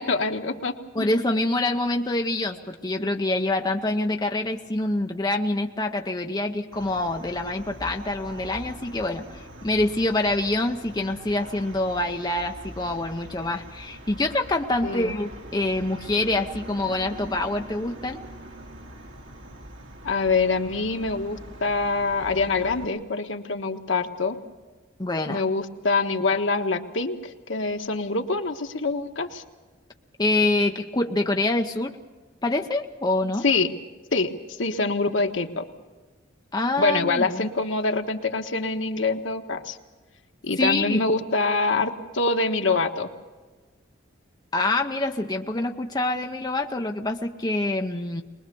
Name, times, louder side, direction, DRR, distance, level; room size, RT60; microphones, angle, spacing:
voice 1, 0.0-1.2 14.8-15.1 20.0-24.4 25.3-29.4 33.4-33.7 34.1-34.3 34.6-35.6 36.8-39.8 40.4-43.1, left 3 dB, 75° left, 4 dB, 1.4 m, -25 dB
voice 2, 0.9-18.2 25.0-25.4 30.2-32.0 32.4-33.4 36.5-37.5 40.6-41.0 44.5-48.2, left 2 dB, 20° left, 3 dB, 0.8 m, -26 dB
sound 1, 6.7-22.8, right 1 dB, 75° right, 2.3 m, -43 dB
22.5 x 21.0 x 6.9 m, 1.3 s
head